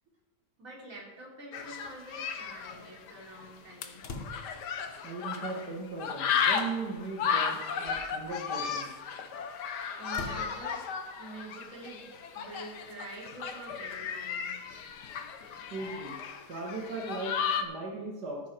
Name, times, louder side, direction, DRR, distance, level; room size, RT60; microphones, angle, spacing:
voice 1, 0.6-4.1 10.0-10.9 11.2-12.0 12.3-14.8, right 2 dB, 50° right, -4 dB, 3.8 m, -46 dB
sound 1, 1.5-5.7 6.0-17.6, left 7 dB, 90° left, 1.6 m, -34 dB
sound 2, 4.0-4.7 5.9-6.0 7.0-7.2 7.7-8.3 10.1-10.5, left 3 dB, 40° left, 1.1 m, -42 dB
voice 2, 5.0-8.9 15.7-16.2 16.5-18.4, right 3 dB, 80° right, -1 dB, 2.2 m, -38 dB
14.5 x 9.3 x 4.5 m, 1.1 s
omnidirectional pair, 1.7 m